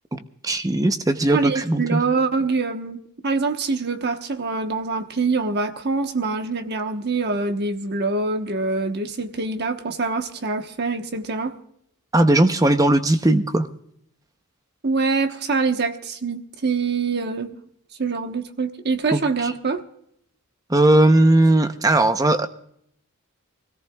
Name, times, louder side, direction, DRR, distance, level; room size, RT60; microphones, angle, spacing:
voice 1, 0.1-2.0 12.1-13.7 19.1-19.5 20.7-22.5, right 1 dB, 15° right, 0.7 m, -18 dB
voice 2, 1.3-11.5 14.8-17.5 18.0-19.8, right 4 dB, 50° right, 1.1 m, -24 dB
24.5 x 17.5 x 2.3 m
head